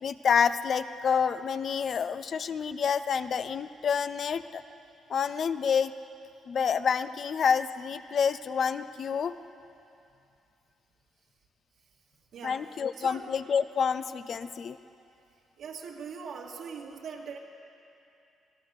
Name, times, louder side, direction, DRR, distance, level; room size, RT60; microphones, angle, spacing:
voice 1, 0.0-4.6 5.1-5.9 6.5-9.4 12.4-14.8, left 6 dB, 55° left, 12 dB, 0.8 m, -28 dB
voice 2, 12.3-13.3 15.6-17.4, right 5 dB, 75° right, -2 dB, 2.2 m, -41 dB
25.5 x 17.0 x 6.6 m, 2.7 s
cardioid pair, 90°, 0 cm